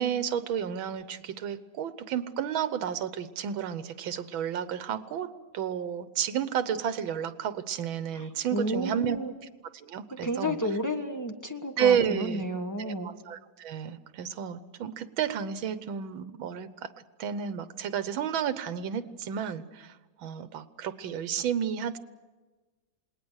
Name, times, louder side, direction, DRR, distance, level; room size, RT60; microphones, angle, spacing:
voice 1, 0.0-5.3 5.5-9.2 9.7-10.6 11.8-12.4 12.8-16.9 17.2-22.0, right 8 dB, 80° right, 13 dB, 1.7 m, -31 dB
voice 2, 8.1-9.3 10.2-13.1, equal, 10° left, 5 dB, 1.0 m, -32 dB
28.0 x 20.0 x 6.4 m, 1.2 s
omnidirectional pair, 2.2 m